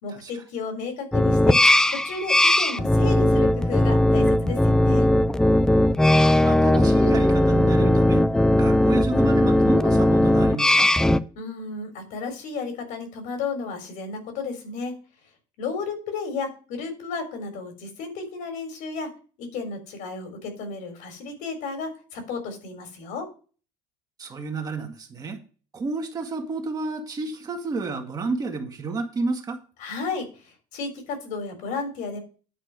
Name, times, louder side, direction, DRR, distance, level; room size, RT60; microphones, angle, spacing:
voice 1, 0.0-1.6 1.9-5.1 11.4-14.9 15.6-19.1 19.4-23.3 29.8-32.2, left 4 dB, 65° left, 6 dB, 3.9 m, -33 dB
sound 1, 1.1-11.2, left 1 dB, 5° left, 0.4 m, -18 dB
voice 2, 6.2-8.3 8.6-10.9 24.2-25.4 25.7-29.6, right 3 dB, 25° right, 4 dB, 1.8 m, -31 dB
10.0 x 4.4 x 7.4 m, 0.38 s
cardioid pair, 140°, 14 cm